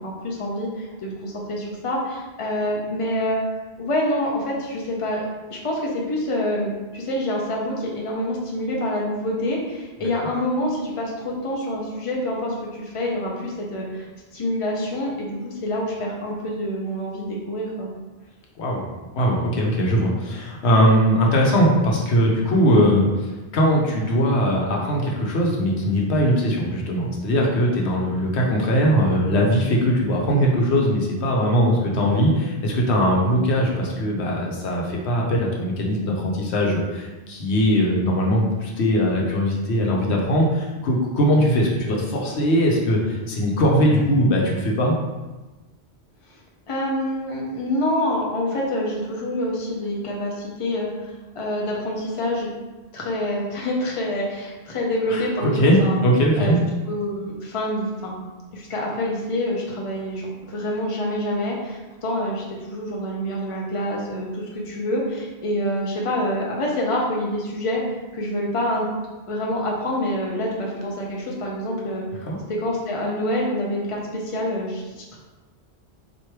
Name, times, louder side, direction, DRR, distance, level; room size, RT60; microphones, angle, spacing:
voice 1, 0.0-3.4 3.8-5.2 5.5-14.1 14.3-17.9 46.7-52.5 52.9-56.0 56.4-56.6 56.9-58.2 58.5-67.8 68.1-68.9 69.3-72.0 72.5-75.2, left 1 dB, 35° left, -2 dB, 0.7 m, -26 dB
voice 2, 18.6-18.9 19.1-45.0 55.1-56.6 72.3-72.4, equal, 80° left, -2 dB, 1.1 m, -20 dB
3.1 x 2.6 x 4.4 m, 1.2 s
omnidirectional pair, 1.1 m